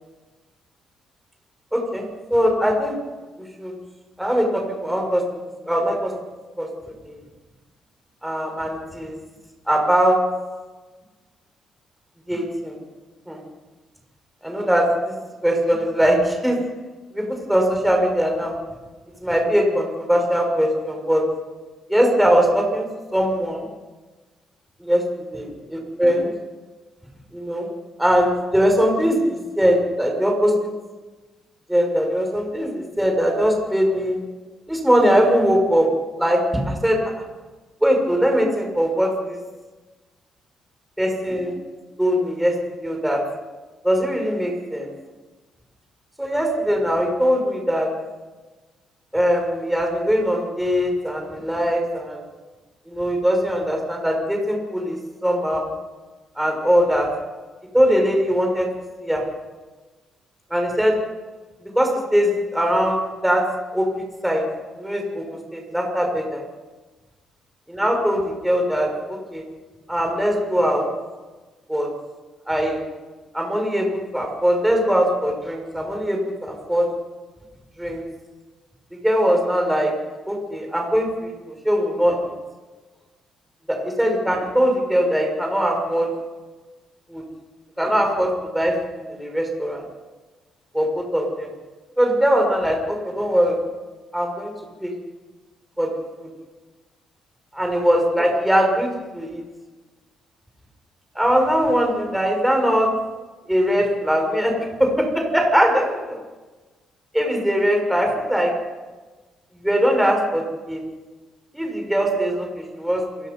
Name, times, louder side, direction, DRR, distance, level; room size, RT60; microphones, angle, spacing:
voice 1, 1.7-3.0 3.6-3.7 4.2-5.2 5.7-6.1 6.6-6.7 7.1-7.2 8.2-9.2 9.7-10.2 12.3-12.8 13.3-13.4 14.4-15.1 15.4-16.6 17.1-18.5 19.2-21.2 21.9-22.8 23.1-23.6 24.8-25.0 25.3-26.3 27.3-27.7 28.0-30.7 31.7-34.2 34.7-35.9 36.2-36.4 36.7-37.0 37.8-39.4 41.0-41.6 42.0-42.5 42.8-43.2 43.8-44.9 46.2-47.9 49.1-52.2 52.9-55.6 56.4-57.1 57.7-58.7 59.0-59.2 60.5-60.9 61.7-63.4 63.7-63.9 64.2-64.4 64.8-66.4 67.7-69.4 69.9-70.9 71.7-71.9 72.5-72.8 73.3-76.9 77.8-78.0 79.0-79.9 80.3-81.3 81.6-82.3 83.7-86.1 87.1-87.2 87.8-88.8 89.1-89.8 90.7-91.5 92.0-93.6 94.1-94.5 94.8-94.9 95.8-95.9 96.2-96.3 97.5-99.4 101.1-102.9 103.5-106.0 107.1-108.5 109.6-110.8 111.5-113.3, equal, 5° right, 1 dB, 6.0 m, -21 dB
29.0 x 17.0 x 5.4 m, 1.3 s
cardioid pair, 90°, 0 cm